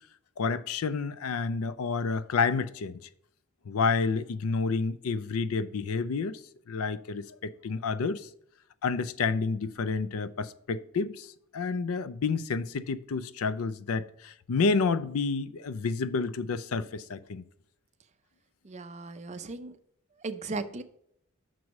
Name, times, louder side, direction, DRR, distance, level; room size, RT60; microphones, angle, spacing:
voice 1, 0.4-3.0 3.7-6.4 6.7-8.3 8.8-17.5, left 4 dB, 70° left, 0.4 m, -29 dB
voice 2, 18.6-19.7 20.2-20.8, right 3 dB, 30° right, 0.5 m, -36 dB
6.1 x 4.7 x 5.2 m
head